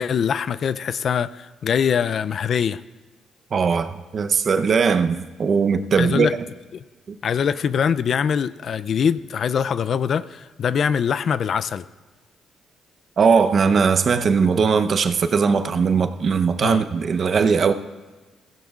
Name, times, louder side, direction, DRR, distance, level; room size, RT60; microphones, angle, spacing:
voice 1, 0.0-2.8 6.0-6.3 6.7-6.8 7.2-11.8 16.6-16.8, left 7 dB, 55° left, 15 dB, 0.4 m, -23 dB
voice 2, 3.5-6.3 7.1-7.2 13.2-17.7, right 5 dB, 50° right, 8 dB, 0.7 m, -19 dB
16.0 x 15.5 x 2.4 m, 1.3 s
cardioid pair, 90°, 0 cm